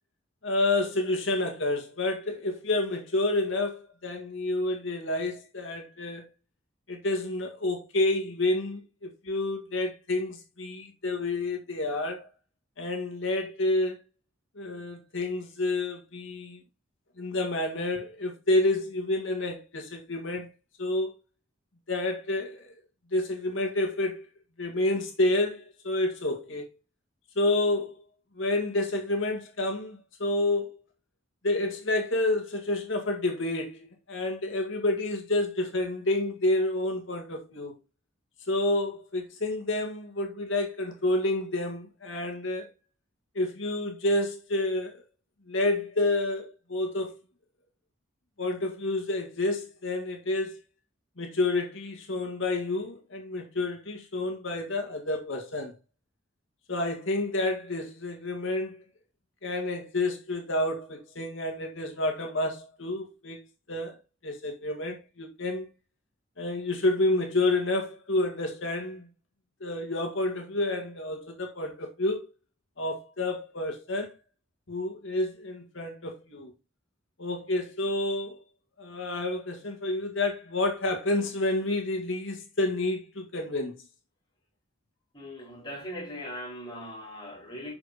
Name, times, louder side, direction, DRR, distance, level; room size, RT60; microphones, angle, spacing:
voice 1, 0.4-6.2 6.9-12.3 12.8-14.0 14.6-16.6 17.2-20.5 20.8-21.1 21.9-22.7 23.1-24.3 24.6-26.6 27.4-27.9 28.4-30.7 31.4-37.7 38.5-42.7 43.4-45.0 45.5-47.1 48.4-50.6 51.2-55.7 56.7-58.8 59.4-63.4 63.7-64.0 64.2-65.7 66.4-69.0 69.6-72.2 72.8-74.1 74.7-76.5 77.2-78.4 78.8-83.8, left 2 dB, 75° left, 2.0 m, -29 dB
voice 2, 85.1-87.7, equal, 25° left, 4.6 m, -39 dB
12.0 x 5.2 x 4.2 m
head